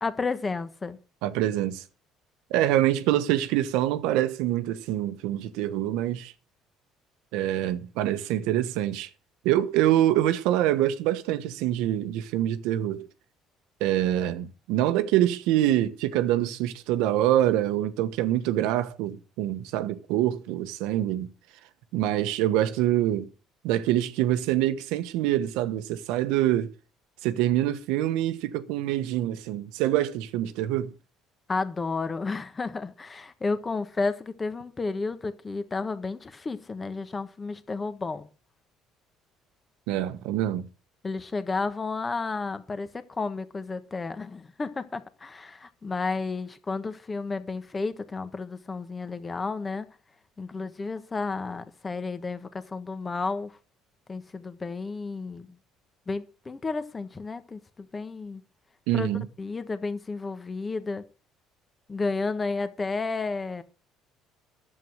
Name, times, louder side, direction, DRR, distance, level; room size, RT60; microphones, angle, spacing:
voice 1, 0.0-1.0 31.5-38.3 41.0-49.9 50.4-53.6 54.1-55.6 56.1-58.4 58.9-59.1 59.4-61.0 61.9-63.6, left 4 dB, 25° left, 1.3 m, -32 dB
voice 2, 1.2-1.8 2.5-6.3 7.3-9.1 9.4-13.1 13.8-21.3 21.9-23.3 23.6-26.7 27.2-30.9 39.9-40.7 58.9-59.3, right 13 dB, 85° right, 1.0 m, -25 dB
11.0 x 7.8 x 6.3 m
cardioid pair, 110°, 0 cm